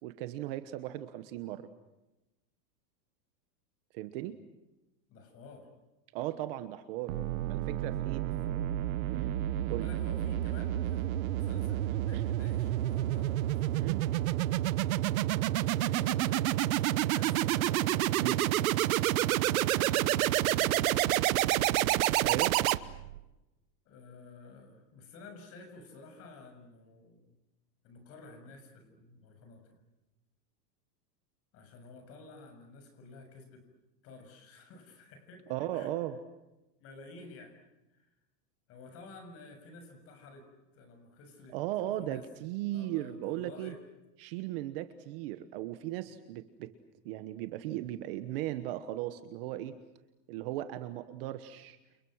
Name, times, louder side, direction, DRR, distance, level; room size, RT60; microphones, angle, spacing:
voice 1, 0.0-1.7 3.9-4.4 6.1-7.2 7.5-8.2 9.1-9.4 9.7-9.9 12.1-12.2 13.8-14.0 18.2-18.4 22.2-22.6 35.5-36.2 41.5-43.7 44.2-46.7 47.0-49.7 50.3-51.8, right 14 dB, 35° right, 11 dB, 1.2 m, -37 dB
voice 2, 5.1-5.7 8.2-8.6 9.7-14.0 15.4-17.9 19.5-21.7 23.9-27.3 27.8-29.8 31.5-33.6 34.0-35.9 36.8-37.6 37.9-38.1 38.7-41.6 42.0-42.2 42.7-43.8, left 3 dB, 25° left, 6 dB, 7.1 m, -51 dB
sound 1, 7.1-23.2, right 14 dB, 55° right, 1.1 m, -29 dB
29.5 x 29.0 x 6.4 m, 0.99 s
supercardioid pair, 175°, 50 cm